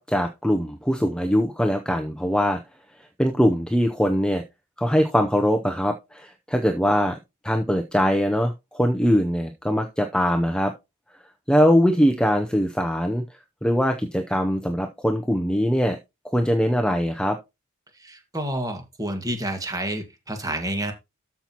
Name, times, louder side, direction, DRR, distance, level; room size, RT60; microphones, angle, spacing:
voice 1, 0.0-2.6 3.0-4.4 4.8-7.2 7.4-10.7 11.5-13.2 13.6-16.0 16.2-17.4, equal, 5° left, 0.6 m, -22 dB
voice 2, 18.0-20.9, right 1 dB, 15° right, 1.7 m, -29 dB
13.0 x 5.8 x 2.9 m
head